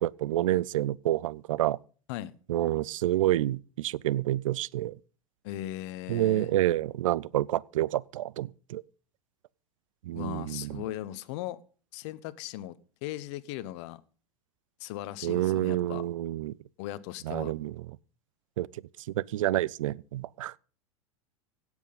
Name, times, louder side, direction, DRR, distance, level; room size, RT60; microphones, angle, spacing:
voice 1, 0.0-1.8 2.5-5.0 6.1-8.8 10.0-10.8 15.2-16.5 17.2-17.7 18.6-18.7 19.1-20.6, right 14 dB, 65° right, 0.5 m, -28 dB
voice 2, 5.4-6.5 10.1-11.6 11.9-12.7 13.0-14.0 14.8-16.0 16.8-17.5, left 14 dB, 55° left, 0.9 m, -38 dB
17.0 x 6.3 x 5.4 m
figure-of-eight pair, 90°, 18 cm